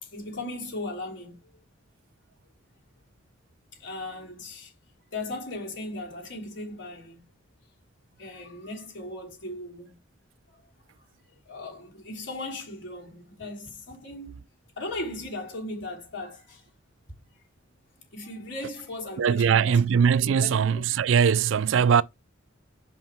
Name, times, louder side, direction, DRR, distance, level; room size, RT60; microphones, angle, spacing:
voice 1, 0.0-1.6 3.7-4.7 5.1-7.3 8.2-10.0 10.5-10.6 11.4-14.4 14.8-16.7 18.1-19.8 20.2-20.9, left 2 dB, 60° left, 3.2 m, -37 dB
voice 2, 19.2-22.0, right 7 dB, 70° right, 0.4 m, -21 dB
6.6 x 5.6 x 4.4 m
head